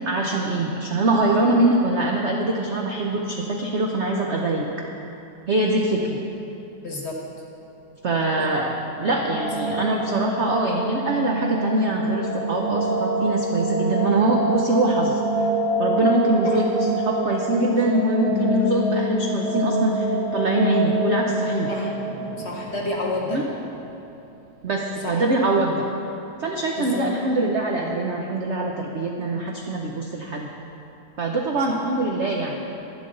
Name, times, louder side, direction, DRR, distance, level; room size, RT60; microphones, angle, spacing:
voice 1, 0.1-4.6 5.5-6.2 8.0-8.7 9.0-15.5 15.8-21.7 23.3-23.4 24.6-25.9 26.4-30.5 31.2-32.6, right 2 dB, 60° right, 0 dB, 0.7 m, -23 dB
voice 2, 6.8-7.2 8.4-8.5 9.6-9.8 16.4-16.6 21.7-21.9 22.4-23.4 25.0-25.2 26.8-27.0 31.7-31.8, left 2 dB, 40° left, -1 dB, 1.2 m, -30 dB
sound 1, 8.9-23.8, right 1 dB, 10° right, 1.5 m, -25 dB
11.5 x 10.0 x 3.8 m, 2.9 s
omnidirectional pair, 2.0 m